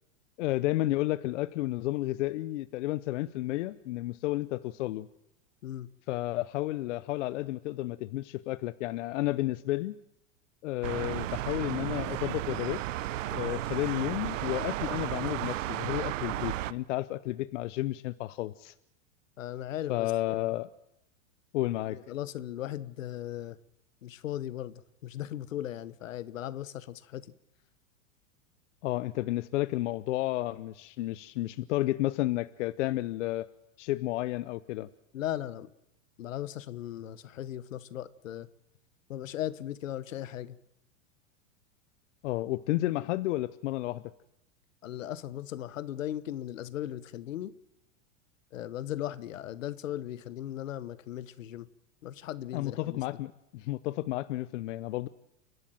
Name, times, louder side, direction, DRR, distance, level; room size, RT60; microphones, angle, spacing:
voice 1, 0.4-5.1 6.1-9.9 10.6-12.8 13.3-18.7 19.9-20.7 21.5-22.0 28.8-33.5 33.8-34.9 42.2-44.0 52.5-55.1, left 17 dB, 70° left, 0.8 m, -32 dB
sound 1, 10.8-16.7, right 14 dB, 80° right, 0.9 m, -34 dB
voice 2, 19.4-20.4 21.9-23.6 24.0-27.3 35.1-35.7 36.2-38.5 39.1-40.6 44.8-47.5 48.5-51.7 52.0-53.0, left 12 dB, 85° left, 1.3 m, -37 dB
29.5 x 12.0 x 9.1 m
supercardioid pair, 130°, 38 cm